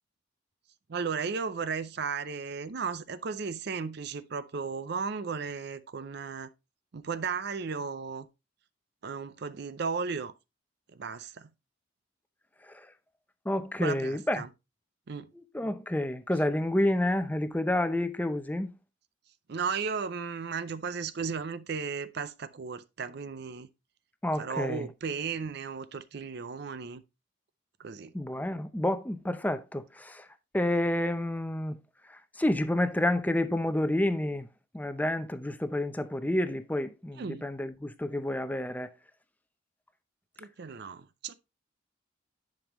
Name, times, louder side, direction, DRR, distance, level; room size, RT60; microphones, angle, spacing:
voice 1, 0.9-6.5 6.9-8.3 9.0-10.3 10.9-11.5 13.8-14.5 15.1-15.3 19.5-23.7 24.4-27.0 27.8-28.1 37.2-37.5 40.4-41.3, right 5 dB, 55° right, 0.5 m, -35 dB
voice 2, 13.5-14.4 15.4-18.7 24.2-24.9 28.1-30.3 30.5-31.8 32.4-34.5 34.7-38.9, left 1 dB, 10° left, 0.6 m, -29 dB
10.5 x 5.3 x 3.0 m
head